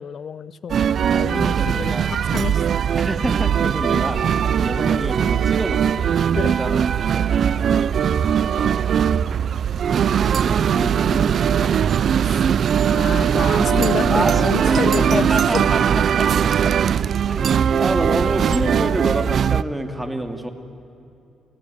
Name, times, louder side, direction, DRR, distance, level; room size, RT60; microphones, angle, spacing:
voice 1, 0.0-2.6 6.4-6.6 7.7-7.9 12.2-12.4 12.9-15.7, left 7 dB, 55° left, 16 dB, 0.7 m, -28 dB
sound 1, 0.7-19.6, right 8 dB, 60° right, 0.5 m, -20 dB
voice 2, 1.5-2.1 3.0-6.0 6.5-7.3 8.4-9.0 9.9-11.7 14.1-16.8 17.2-20.5, right 1 dB, 10° right, 6 dB, 2.5 m, -28 dB
27.0 x 16.0 x 9.7 m, 2.7 s
cardioid pair, 90°, 0 cm